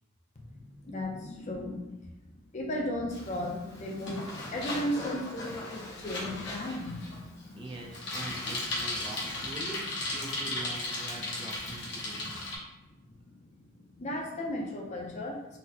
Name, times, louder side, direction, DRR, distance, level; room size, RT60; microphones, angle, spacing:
voice 1, 0.4-2.0 2.5-7.6 11.6-11.7 13.1-13.3 13.8-15.4, left 1 dB, 35° left, 0 dB, 0.5 m, -36 dB
Bicycle, 3.1-12.6, left 2 dB, 60° left, 0.8 m, -37 dB
voice 2, 7.6-12.3, right 2 dB, 25° right, -1 dB, 0.3 m, -43 dB
3.9 x 2.0 x 2.7 m, 0.98 s
head